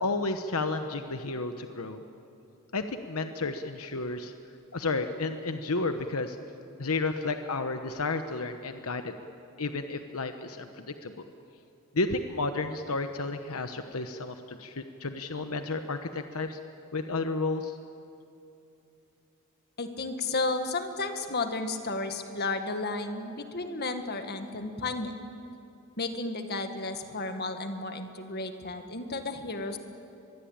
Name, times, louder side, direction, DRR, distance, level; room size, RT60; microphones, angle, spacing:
voice 1, 0.0-2.0 2.7-4.3 4.7-6.4 6.8-9.1 9.6-11.1 11.9-16.6 16.9-17.8, left 3 dB, 80° left, 7 dB, 1.1 m, -32 dB
voice 2, 19.8-25.1 26.0-29.8, left 3 dB, 50° left, 6 dB, 1.9 m, -33 dB
24.0 x 22.0 x 8.9 m, 2.8 s
head